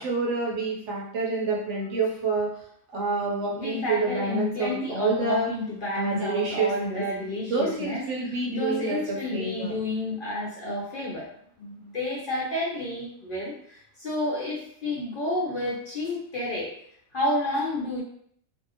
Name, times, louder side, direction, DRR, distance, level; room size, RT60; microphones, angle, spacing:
voice 1, 0.0-2.5 2.9-5.5 5.9-7.0 7.4-9.7, right 3 dB, 65° right, -2 dB, 1.0 m, -28 dB
voice 2, 3.5-8.0 8.5-11.3 11.6-16.7 17.1-18.0, left 1 dB, 55° left, -5 dB, 0.7 m, -30 dB
2.6 x 2.4 x 2.7 m, 0.66 s
omnidirectional pair, 1.4 m